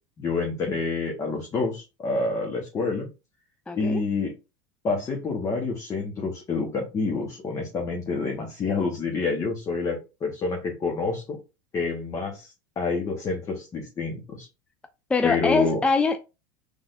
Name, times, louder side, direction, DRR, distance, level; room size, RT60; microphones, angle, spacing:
voice 1, 0.2-3.1 3.8-4.3 4.8-11.4 11.7-14.5 15.2-15.8, left 4 dB, 30° left, 1.2 m, -28 dB
voice 2, 3.7-4.0 15.1-16.2, left 3 dB, 10° left, 0.4 m, -23 dB
5.7 x 3.5 x 2.6 m
supercardioid pair, 115°, 11 cm